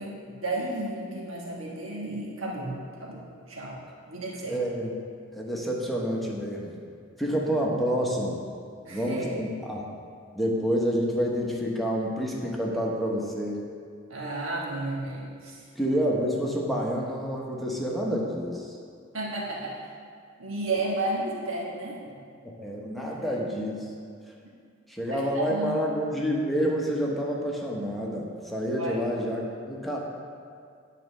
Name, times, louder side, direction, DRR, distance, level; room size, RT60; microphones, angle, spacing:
voice 1, 0.0-3.8 4.1-4.6 8.8-9.4 14.1-15.6 19.1-19.8 20.4-22.0 23.0-23.4 25.0-25.8 28.8-29.0, right 2 dB, 85° right, -4 dB, 1.4 m, -33 dB
voice 2, 4.5-4.9 5.3-6.7 7.2-8.4 8.9-9.9 10.3-13.6 15.8-18.7 22.4-23.8 24.9-30.0, equal, ahead, -3 dB, 0.9 m, -28 dB
10.0 x 4.1 x 6.4 m, 2.2 s
head